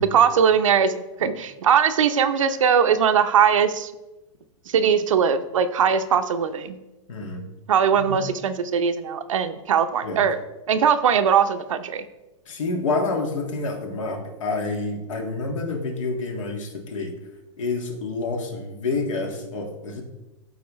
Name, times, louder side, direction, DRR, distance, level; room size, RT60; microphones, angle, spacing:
voice 1, 0.0-3.9 4.7-6.8 7.7-10.4 10.7-12.0, right 7 dB, 85° right, 9 dB, 0.7 m, -20 dB
voice 2, 7.1-7.4 8.0-8.2 10.0-10.3 12.5-17.2 17.6-20.0, left 3 dB, 80° left, 3 dB, 1.7 m, -28 dB
12.5 x 4.3 x 3.1 m, 1.0 s
hypercardioid pair, 125°, 16 cm